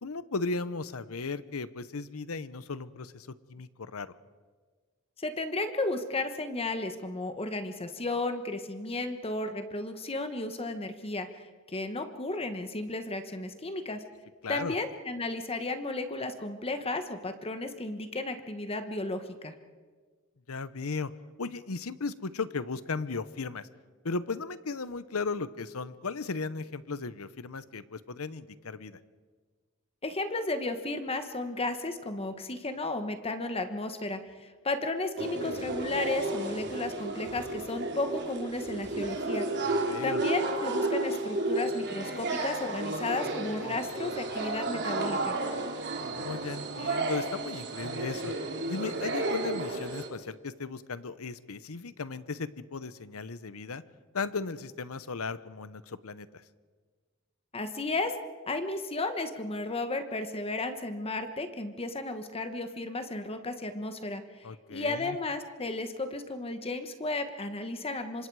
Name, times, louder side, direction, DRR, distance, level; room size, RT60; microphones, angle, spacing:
voice 1, 0.0-4.1 14.4-14.7 20.5-21.1 21.4-23.7 24.0-29.0 39.6-40.2 46.0-48.3 48.7-53.8 54.1-56.4 64.4-65.2, left 4 dB, 90° left, 15 dB, 0.9 m, -36 dB
voice 2, 5.2-14.0 14.5-19.5 30.0-39.5 40.0-45.4 57.5-58.2 58.5-68.3, left 2 dB, 30° left, 8 dB, 1.2 m, -34 dB
sound 1, 35.2-50.1, right 2 dB, 55° right, 3.2 m, -32 dB
27.5 x 25.0 x 4.8 m, 1.5 s
head